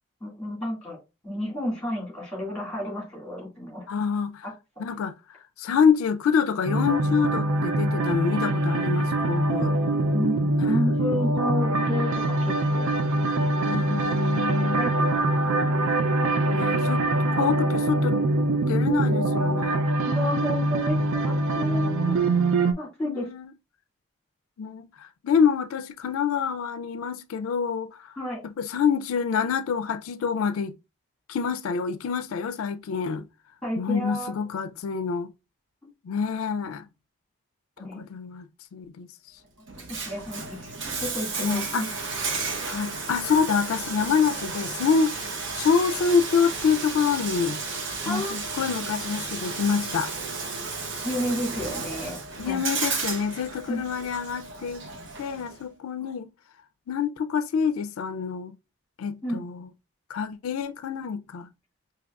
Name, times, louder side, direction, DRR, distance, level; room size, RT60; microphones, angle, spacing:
voice 1, 0.2-3.8 10.1-12.9 13.9-14.1 14.5-14.9 15.9-16.6 20.0-22.2 22.8-23.3 28.2-28.4 33.6-34.3 37.8-38.0 40.1-40.7 41.0-41.9 48.0-48.4 51.0-52.2 52.4-52.6 53.7-53.8 59.2-59.4, left 1 dB, 5° left, 1.9 m, -31 dB
voice 2, 3.9-4.5 4.8-9.8 10.6-10.8 13.6-14.8 16.5-17.1 17.3-18.3 18.7-19.9 21.9-22.1 22.7-22.8 23.0-23.5 24.6-28.1 28.4-30.8 31.3-33.3 33.8-35.3 36.0-36.9 37.8-38.5 38.7-39.1 41.4-42.1 42.6-45.1 45.5-47.6 48.1-50.1 52.4-54.9 55.2-56.3 56.9-58.6 59.0-59.7 60.1-61.5, left 6 dB, 85° left, 0.3 m, -26 dB
sound 1, 6.6-22.7, right 2 dB, 80° right, 0.4 m, -24 dB
Bathtub (filling or washing), 39.7-55.6, right 4 dB, 60° right, 0.8 m, -33 dB
5.0 x 2.8 x 2.3 m
head